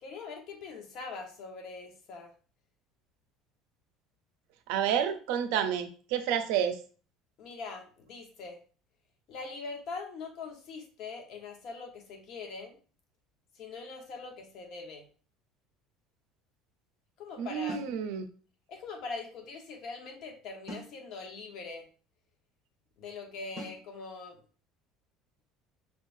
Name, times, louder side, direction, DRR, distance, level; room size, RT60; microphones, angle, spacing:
voice 1, 0.0-2.3 7.4-8.6 9.3-12.8 13.5-15.1 17.2-17.8 18.7-21.9 23.0-24.4, left 4 dB, 50° left, 2 dB, 1.2 m, -42 dB
voice 2, 4.7-6.8 17.4-18.3, right 9 dB, 80° right, 9 dB, 0.6 m, -29 dB
sound 1, 17.7-18.0 20.7-21.0 23.6-23.9, equal, 20° left, 2.1 m, -42 dB
5.6 x 3.5 x 2.7 m, 0.39 s
cardioid pair, 145°, 0 cm